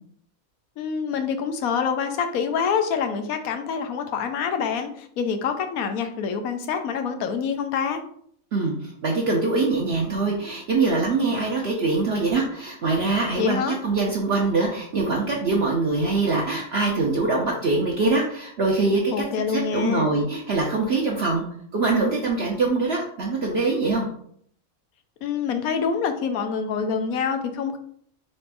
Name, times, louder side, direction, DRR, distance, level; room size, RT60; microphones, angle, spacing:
voice 1, 0.8-8.0 13.4-13.8 19.1-20.1 25.2-27.8, left 6 dB, 85° left, 7 dB, 1.1 m, -26 dB
voice 2, 8.5-19.0 19.5-21.5 21.7-24.1, right 3 dB, 55° right, -2 dB, 0.8 m, -23 dB
4.2 x 2.5 x 4.6 m, 0.64 s
omnidirectional pair, 1.5 m